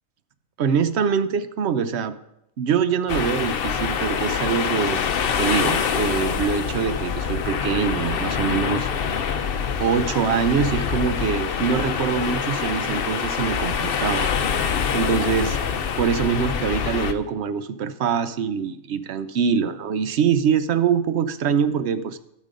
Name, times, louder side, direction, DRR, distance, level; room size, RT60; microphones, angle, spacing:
voice 1, 0.6-2.1 2.6-5.0 5.4-8.9 9.8-14.3 14.9-15.6 16.0-22.2, right 7 dB, 60° right, 12 dB, 0.9 m, -24 dB
sound 1, 3.1-17.1, left 7 dB, 55° left, 0.8 m, -25 dB
12.5 x 7.5 x 5.2 m, 0.81 s
omnidirectional pair, 1.4 m